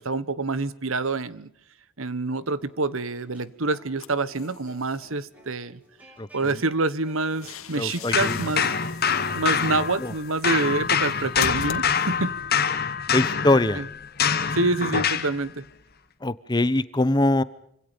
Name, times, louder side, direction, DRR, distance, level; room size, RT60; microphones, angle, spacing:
voice 1, 0.0-1.5 2.0-5.8 6.3-8.7 9.3-12.7 13.7-13.8 14.5-15.6, right 3 dB, 70° right, 16 dB, 1.3 m, -27 dB
sound 1, 2.3-10.1 10.6-15.4, right 1 dB, 5° right, 5.9 m, -55 dB
sound 2, 4.0-5.1 7.0-12.4, left 5 dB, 80° left, 2.4 m, -40 dB
voice 2, 7.7-8.4 10.0-10.1 13.1-13.8 16.2-17.4, left 2 dB, 20° left, 16 dB, 0.9 m, -22 dB
sound 3, 8.1-10.2 10.4-15.4, left 7 dB, 45° left, 1.4 m, -25 dB
27.0 x 26.0 x 5.3 m, 0.68 s
head